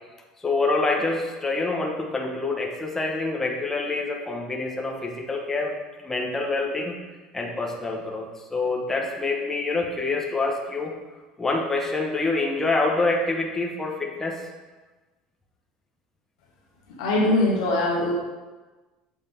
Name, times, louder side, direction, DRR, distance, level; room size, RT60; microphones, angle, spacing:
voice 1, 0.4-5.8 6.0-7.0 7.3-10.9 11.4-14.4, left 3 dB, 15° left, -1 dB, 1.0 m, -26 dB
voice 2, 17.0-18.1, left 2 dB, 90° left, -2 dB, 1.3 m, -21 dB
7.6 x 3.7 x 3.5 m, 1.2 s
supercardioid pair, 90°, 3 cm